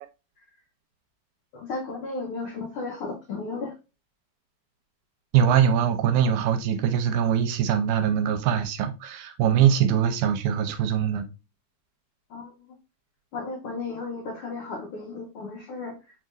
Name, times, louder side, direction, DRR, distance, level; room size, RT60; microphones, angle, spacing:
voice 1, 1.5-3.7 12.3-12.5 13.3-15.9, left 3 dB, 85° left, 1.2 m, -34 dB
voice 2, 5.3-11.3, right 9 dB, 85° right, 2.1 m, -22 dB
4.6 x 3.7 x 2.4 m
omnidirectional pair, 3.6 m